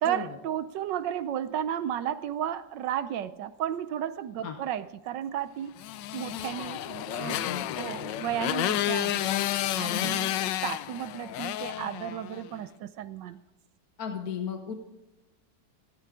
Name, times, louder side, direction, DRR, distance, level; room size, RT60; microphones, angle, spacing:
voice 1, 0.0-5.7 6.1-7.5 7.8-9.2 9.7-13.4, right 10 dB, 75° right, 1.2 m, -33 dB
Motorcycle, 5.8-12.5, left 13 dB, 75° left, 1.2 m, -31 dB
voice 2, 7.1-7.8 9.9-10.1 14.0-14.7, left 7 dB, 55° left, 1.4 m, -35 dB
16.0 x 13.5 x 3.6 m
omnidirectional pair, 2.1 m